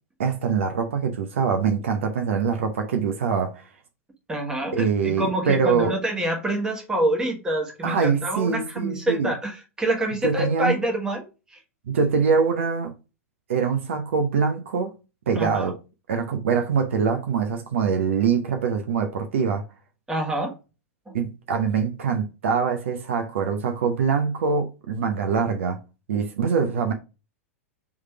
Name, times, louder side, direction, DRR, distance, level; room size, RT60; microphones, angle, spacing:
voice 1, 0.2-3.6 4.7-5.9 7.8-9.3 10.2-10.8 11.9-12.9 13.5-14.9 15.3-15.7 16.1-19.6 21.1-25.8 26.1-26.9, right 6 dB, 60° right, 0.6 m, -24 dB
voice 2, 4.3-11.2 11.5-11.6 15.3-15.7 20.1-20.5 21.1-21.2, right 1 dB, 10° right, 1.2 m, -26 dB
3.6 x 3.2 x 4.5 m
figure-of-eight pair, 95°, 8 cm